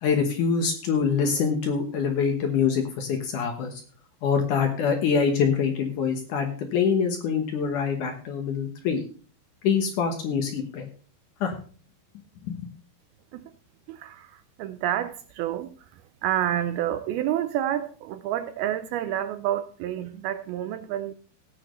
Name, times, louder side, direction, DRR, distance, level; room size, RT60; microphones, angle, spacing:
voice 1, 0.0-3.7 4.2-9.0 9.6-10.9 11.4-11.6 12.5-12.6, left 6 dB, 65° left, 4 dB, 2.3 m, -25 dB
voice 2, 13.9-15.8 16.2-21.1, right 11 dB, 80° right, 11 dB, 2.3 m, -29 dB
17.0 x 8.8 x 3.2 m, 0.40 s
omnidirectional pair, 4.8 m